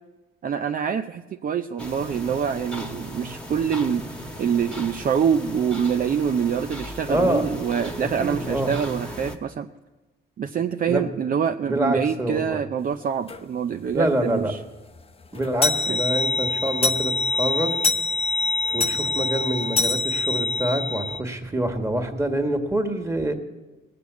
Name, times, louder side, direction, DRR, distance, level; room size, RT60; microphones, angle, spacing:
voice 1, 0.4-9.7 10.4-14.6 15.9-16.0, right 7 dB, 45° right, 6 dB, 0.6 m, -25 dB
sound 1, 1.8-9.4, equal, 5° left, 1.4 m, -36 dB
voice 2, 7.1-7.5 8.0-8.7 10.8-11.0 11.6-12.6 13.9-14.5 15.3-17.7 18.7-23.3, right 1 dB, 15° right, 4 dB, 1.8 m, -26 dB
sound 2, 13.3-13.4 13.9-14.0 14.3-14.4 14.8-21.2, left 3 dB, 30° left, 0.8 m, -25 dB
19.0 x 6.8 x 8.3 m, 1.2 s
cardioid pair, 90°, 20 cm